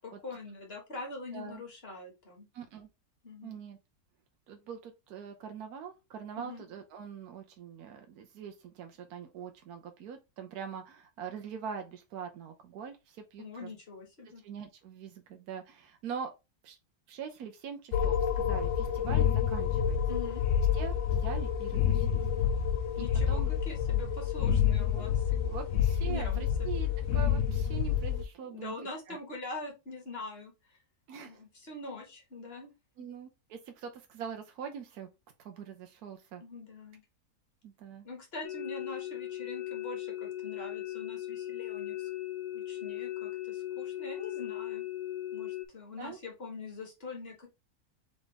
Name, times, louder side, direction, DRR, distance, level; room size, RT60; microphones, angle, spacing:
voice 1, 0.0-2.5 3.2-3.6 6.4-6.6 13.4-14.4 20.1-20.4 23.0-25.8 26.1-26.7 28.4-30.8 31.2-32.7 36.4-37.0 38.0-42.1 42.5-44.8 45.3-47.5, left 3 dB, 40° left, 1.8 m, -44 dB
voice 2, 2.5-2.9 3.4-3.8 4.5-13.7 14.4-16.3 16.6-16.8 17.1-20.0 20.7-22.2 23.0-23.5 25.0-25.1 25.4-28.8 29.1-29.2 31.1-31.4 33.0-35.1 35.4-36.4 37.6-38.1 46.0-46.2, right 7 dB, 75° right, 1.2 m, -43 dB
sound 1, 17.9-28.2, left 8 dB, 65° left, 0.8 m, -28 dB
sound 2, 38.4-45.7, left 14 dB, 85° left, 1.2 m, -38 dB
3.8 x 3.5 x 3.7 m
omnidirectional pair, 1.6 m